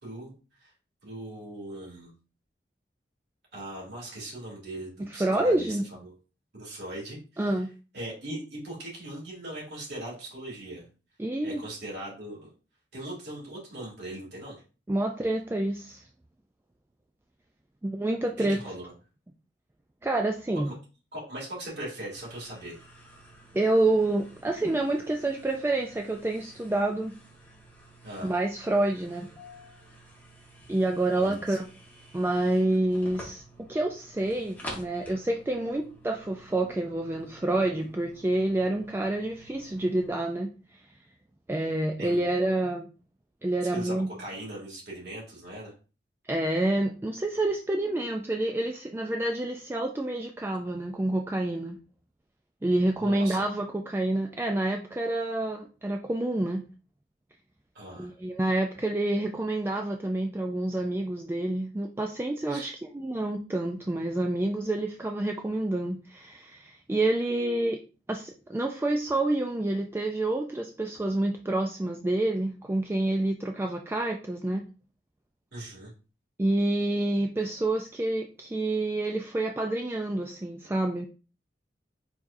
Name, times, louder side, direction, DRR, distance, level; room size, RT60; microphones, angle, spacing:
voice 1, 0.0-0.3 0.6-0.7 1.0-2.1 3.5-6.1 6.5-7.6 7.9-10.9 11.4-12.5 12.9-14.6 18.4-18.9 20.6-20.7 21.1-22.8 28.0-28.4 31.1-31.6 42.0-42.3 43.7-45.7 53.0-53.5 57.7-58.1 62.5-62.7 75.5-75.9, right 1 dB, 65° right, -4 dB, 2.5 m, -40 dB
voice 2, 5.0-5.8 7.4-7.7 11.2-11.6 14.9-16.1 17.8-18.6 20.0-20.7 23.5-27.2 28.2-29.3 30.7-31.6 32.1-33.4 33.7-40.9 41.5-42.9 43.4-44.1 46.3-51.8 52.6-56.6 58.0-67.8 68.1-74.6 76.4-81.1, right 2 dB, 15° right, 3 dB, 0.3 m, -28 dB
sound 1, 22.1-40.1, equal, 10° left, 1.1 m, -50 dB
4.6 x 4.1 x 2.5 m, 0.35 s
head